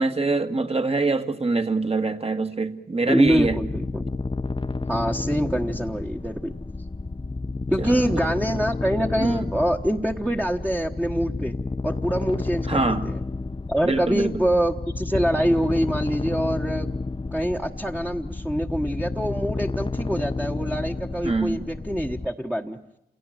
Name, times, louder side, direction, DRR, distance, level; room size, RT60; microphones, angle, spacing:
voice 1, 0.0-3.6 7.8-8.3 9.2-9.5 12.7-13.1 13.8-14.4 21.2-21.7, right 3 dB, 35° right, 1.8 m, -24 dB
voice 2, 3.1-4.0 4.9-6.5 7.7-11.5 11.8-13.2 13.7-16.9 17.3-22.8, equal, 10° right, 1.3 m, -25 dB
sound 1, 3.3-22.3, left 3 dB, 30° left, 0.8 m, -31 dB
28.0 x 17.5 x 9.1 m
cardioid pair, 45°, 18 cm